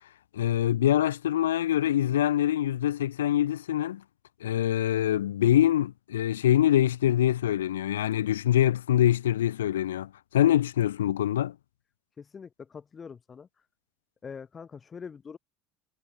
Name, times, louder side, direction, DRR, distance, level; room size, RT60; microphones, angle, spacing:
voice 1, 0.3-4.0 4.4-11.6, left 12 dB, 85° left, 0.3 m, -24 dB
voice 2, 12.2-13.5 14.2-15.4, left 6 dB, 30° left, 2.5 m, -43 dB
hypercardioid pair, 75°, 0 cm